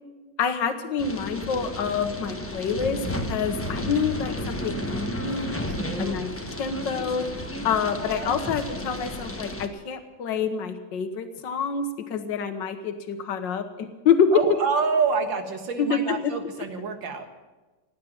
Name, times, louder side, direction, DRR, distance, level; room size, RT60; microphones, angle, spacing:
voice 1, 0.4-5.6 6.0-6.3 6.6-7.3 7.6-14.3 15.8-16.3, left 6 dB, 70° left, 7 dB, 1.8 m, -27 dB
sound 1, 1.0-9.7, left 1 dB, 10° left, 0.8 m, -32 dB
voice 2, 5.7-6.2 14.3-17.3, right 5 dB, 75° right, 6 dB, 2.3 m, -27 dB
16.0 x 9.4 x 9.4 m, 1.2 s
omnidirectional pair, 2.1 m